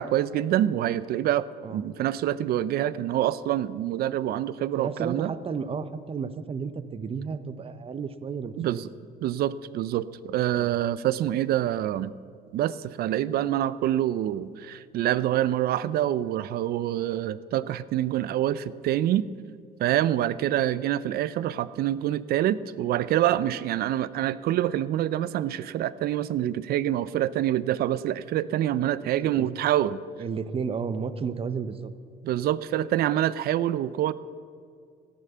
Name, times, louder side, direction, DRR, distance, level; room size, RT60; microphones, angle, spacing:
voice 1, 0.0-5.3 8.6-8.9 9.2-12.1 12.5-19.3 19.8-30.0 32.2-34.1, right 12 dB, 65° right, 18 dB, 0.5 m, -26 dB
voice 2, 4.8-8.8 10.6-10.8 29.2-29.5 30.2-31.9, right 5 dB, 35° right, 13 dB, 0.8 m, -32 dB
13.5 x 11.0 x 6.8 m, 2.3 s
cardioid pair, 110°, 17 cm